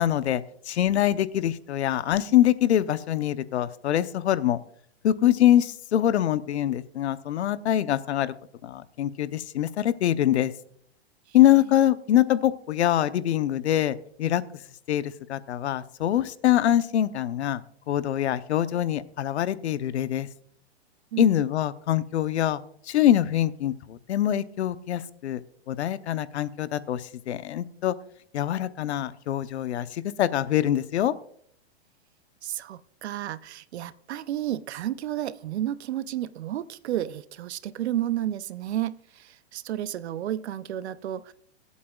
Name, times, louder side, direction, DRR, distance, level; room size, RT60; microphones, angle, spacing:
voice 1, 0.0-4.6 5.0-8.3 8.6-10.5 11.3-14.4 14.9-17.6 17.9-20.3 21.2-22.6 22.9-25.4 25.7-27.9 28.3-31.1, left 12 dB, 85° left, 14 dB, 0.9 m, -24 dB
voice 2, 21.1-21.4 32.4-41.3, right 12 dB, 80° right, 16 dB, 0.7 m, -32 dB
24.5 x 8.3 x 2.4 m, 0.64 s
supercardioid pair, 170°, 33 cm